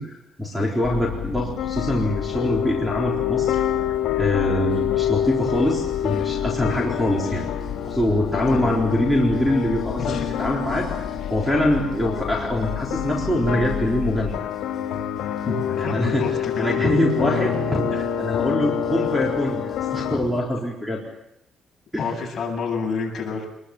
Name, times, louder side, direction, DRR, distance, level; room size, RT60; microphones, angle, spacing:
voice 1, 0.0-3.6 4.2-7.5 7.8-10.9 11.3-14.3 15.8-16.3 16.6-21.0 21.9-22.1, left 1 dB, 5° right, -1 dB, 4.0 m, -24 dB
sound 1, 0.8-14.4, left 9 dB, 60° left, 1.2 m, -34 dB
sound 2, 1.6-20.2, left 10 dB, 90° left, 2.0 m, -27 dB
sound 3, 5.1-20.4, left 2 dB, 15° left, 5.5 m, -47 dB
voice 2, 10.0-10.3 15.5-16.6 22.0-23.5, left 4 dB, 35° left, -1 dB, 8.0 m, -28 dB
26.5 x 21.5 x 7.3 m, 0.85 s
cardioid pair, 160°, 0 cm